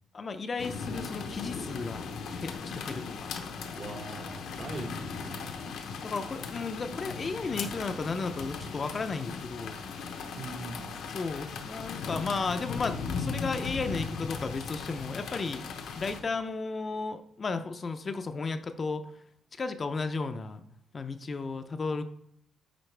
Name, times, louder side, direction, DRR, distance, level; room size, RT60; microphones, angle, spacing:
voice 1, 0.1-2.1 2.4-3.3 6.0-9.8 11.1-15.6 16.0-19.1 19.5-20.6 20.9-22.0, left 4 dB, 35° left, 9 dB, 0.5 m, -34 dB
sound 1, 0.6-16.2, left 5 dB, 75° left, 0.8 m, -38 dB
voice 2, 3.8-5.5 10.3-10.9, right 2 dB, 40° right, 6 dB, 1.0 m, -41 dB
9.0 x 4.0 x 3.3 m, 0.71 s
cardioid pair, 90°, 0 cm